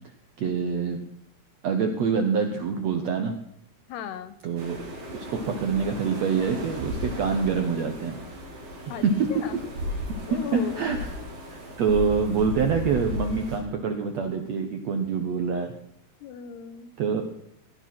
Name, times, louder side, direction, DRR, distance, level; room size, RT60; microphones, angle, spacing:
voice 1, 0.4-1.0 1.6-3.3 4.4-4.8 5.1-8.2 9.0-9.1 10.3-11.0 11.5-15.7 17.0-17.2, right 5 dB, 75° right, 6 dB, 1.6 m, -26 dB
voice 2, 3.9-4.4 8.9-9.1 9.3-9.6 10.3-10.9 16.2-16.9, left 9 dB, 90° left, 11 dB, 3.2 m, -36 dB
sound 1, 4.6-13.6, left 1 dB, 55° right, 6.2 m, -35 dB
18.0 x 11.0 x 6.0 m, 0.74 s
omnidirectional pair, 4.6 m